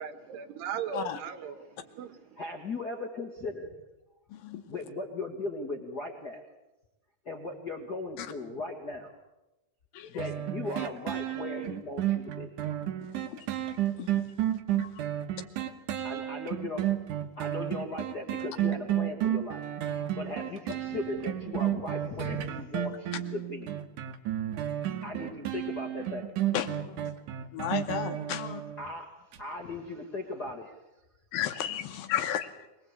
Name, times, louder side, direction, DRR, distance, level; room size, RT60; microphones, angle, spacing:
voice 1, 0.0-2.2, right 8 dB, 85° right, 3.4 m, -38 dB
voice 2, 2.4-3.7 4.7-6.4 7.2-9.1 10.1-12.5 16.0-16.9 17.4-19.6 20.1-23.7 25.0-26.3 28.8-29.1 29.4-30.7, left 2 dB, 45° left, 1.3 m, -37 dB
voice 3, 4.3-4.6 8.2-8.3 9.9-10.2 14.7-15.0 26.5-27.1 27.5-28.6 31.3-32.6, left 10 dB, 70° left, 2.5 m, -33 dB
sound 1, 10.2-28.9 29.3-29.4, right 12 dB, 65° right, 2.3 m, -32 dB
23.5 x 19.0 x 8.2 m
omnidirectional pair, 4.7 m